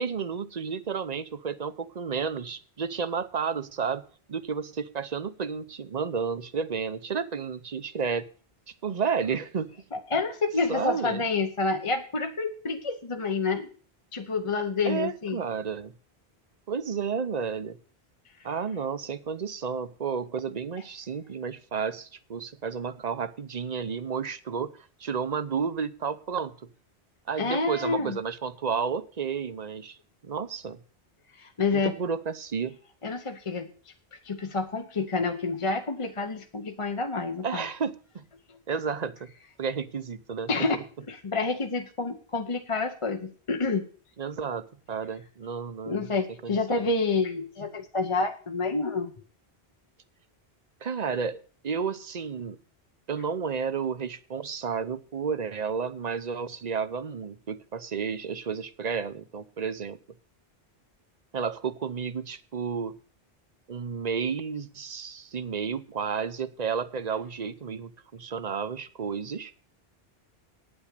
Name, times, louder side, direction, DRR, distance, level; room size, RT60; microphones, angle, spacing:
voice 1, 0.0-8.3 8.8-9.7 10.7-11.2 14.8-15.9 16.7-17.8 18.4-26.6 27.3-30.0 30.2-30.8 31.7-32.8 37.4-38.3 38.7-39.3 39.6-40.8 44.2-46.1 46.4-46.9 50.8-52.6 53.1-60.0 61.3-62.9 63.7-69.5, right 6 dB, 45° right, 14 dB, 0.8 m, -32 dB
voice 2, 9.9-13.7 14.1-15.4 27.4-28.2 31.4-31.9 33.0-33.7 34.2-37.6 40.5-40.8 41.1-43.9 45.9-49.1, left 3 dB, 30° left, 6 dB, 0.9 m, -28 dB
9.6 x 8.8 x 6.6 m, 0.40 s
omnidirectional pair, 1.1 m